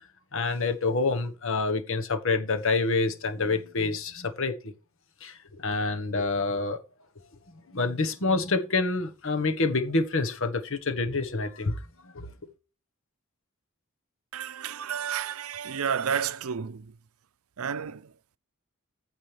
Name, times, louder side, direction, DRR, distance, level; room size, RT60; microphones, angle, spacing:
voice 1, 0.3-4.7 5.2-6.8 7.7-11.8 12.1-12.3, left 3 dB, 65° left, 1.3 m, -27 dB
voice 2, 14.3-16.9 17.6-18.0, right 7 dB, 75° right, 0.6 m, -31 dB
15.0 x 5.1 x 3.4 m
head